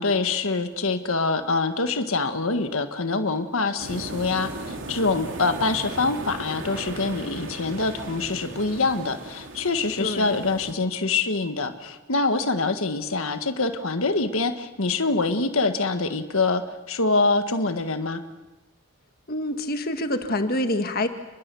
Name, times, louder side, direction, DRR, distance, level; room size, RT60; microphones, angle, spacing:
voice 1, 0.0-16.6 16.9-18.2, left 3 dB, 65° left, 8 dB, 1.6 m, -25 dB
sound 1, 3.8-10.7, right 2 dB, 55° right, 3.0 m, -37 dB
voice 2, 10.0-10.3 19.3-21.1, left 1 dB, 40° left, 7 dB, 1.6 m, -26 dB
30.0 x 21.5 x 7.0 m, 1.1 s
head